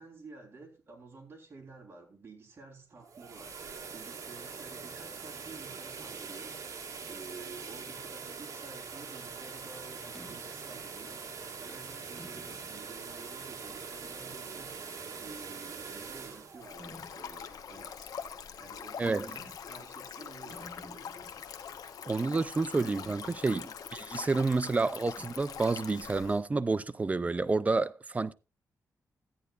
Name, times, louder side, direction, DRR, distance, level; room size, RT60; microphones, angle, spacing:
voice 1, 0.0-6.6 7.0-14.9 15.2-21.1, right 4 dB, 40° right, 3.5 m, -51 dB
sound 1, 2.9-17.8, right 5 dB, 60° right, 1.7 m, -43 dB
sound 2, 10.1-10.4 11.3-11.4 12.2-12.7 13.3-13.4 16.8-17.2 19.3-19.7 20.0-20.1 20.3-21.4 23.0-23.2 25.2-25.6, equal, 5° right, 2.0 m, -51 dB
Stream, 16.6-26.4, left 7 dB, 75° left, 0.9 m, -43 dB
voice 2, 19.0-19.3 22.1-28.3, right 3 dB, 25° right, 0.5 m, -29 dB
14.0 x 9.5 x 2.4 m
wide cardioid pair, 115°, 6 cm